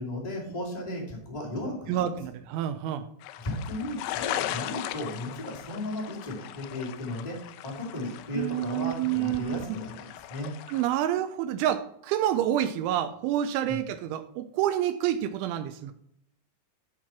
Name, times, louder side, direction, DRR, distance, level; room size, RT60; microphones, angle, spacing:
voice 1, 0.0-2.1 3.4-10.5 13.7-13.8, left 1 dB, 70° left, -3 dB, 0.4 m, -35 dB
voice 2, 1.9-3.1 8.3-9.6 10.7-15.9, right 11 dB, 85° right, 10 dB, 2.8 m, -28 dB
sound 1, 3.2-10.9, left 13 dB, 85° left, 2.7 m, -38 dB
13.0 x 4.5 x 6.0 m, 0.71 s
omnidirectional pair, 5.9 m